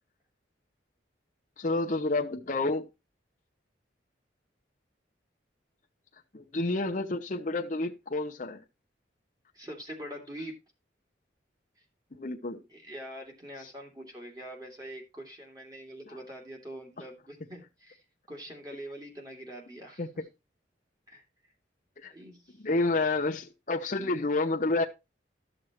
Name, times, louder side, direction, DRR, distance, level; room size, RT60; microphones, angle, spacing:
voice 1, 1.6-2.9 6.3-8.6 12.1-12.6 20.0-20.1 22.0-22.1 22.6-24.8, left 2 dB, 40° left, 0.7 m, -29 dB
voice 2, 9.5-10.6 12.7-18.0 18.3-20.0 21.1-21.2 22.1-23.0, equal, 20° right, 2.4 m, -44 dB
13.0 x 6.4 x 3.0 m
head